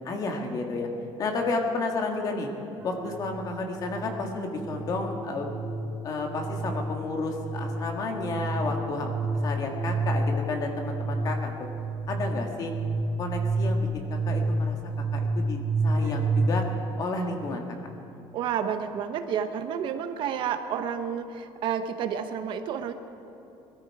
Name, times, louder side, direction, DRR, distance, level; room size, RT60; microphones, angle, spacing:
voice 1, 0.0-0.9 1.2-2.5 2.8-5.5 6.0-9.1 9.4-11.7 12.1-12.7 13.2-16.6 17.0-17.6, left 3 dB, 40° left, 3 dB, 1.9 m, -31 dB
sound 1, 2.8-16.5, right 2 dB, 20° right, 2.2 m, -30 dB
voice 2, 18.3-22.9, right 8 dB, 55° right, 8 dB, 1.0 m, -30 dB
21.5 x 13.5 x 4.8 m, 3.0 s
cardioid pair, 160°, 10 cm